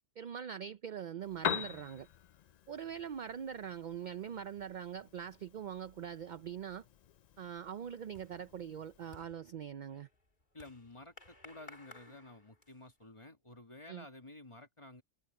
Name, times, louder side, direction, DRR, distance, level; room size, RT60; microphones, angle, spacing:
voice 1, 0.2-2.1 2.7-6.8 7.4-10.1 13.9-14.1, right 8 dB, 60° right, 0.5 m, -43 dB
Piano, 1.2-9.2, left 9 dB, 70° left, 0.4 m, -44 dB
sound 1, 7.2-13.0, left 2 dB, 40° left, 3.4 m, -59 dB
voice 2, 10.5-15.0, left 2 dB, 25° left, 2.0 m, -52 dB
omnidirectional pair, 1.3 m